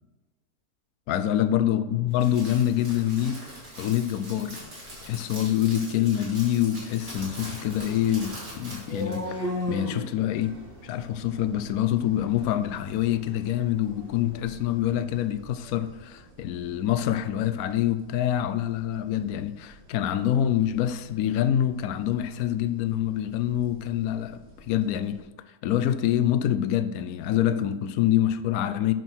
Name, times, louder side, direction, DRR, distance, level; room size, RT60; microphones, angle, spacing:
voice 1, 1.1-4.6 5.0-10.6 10.8-25.2 25.6-28.9, left 11 dB, 70° left, 1.0 m, -26 dB
Crackle, 2.1-9.2, equal, 60° right, 4.0 m, -42 dB
sound 1, 7.9-15.8, left 1 dB, 40° right, 1.2 m, -38 dB
sound 2, 10.3-25.2, right 1 dB, 85° right, 2.5 m, -53 dB
9.1 x 6.2 x 4.5 m
omnidirectional pair, 1.7 m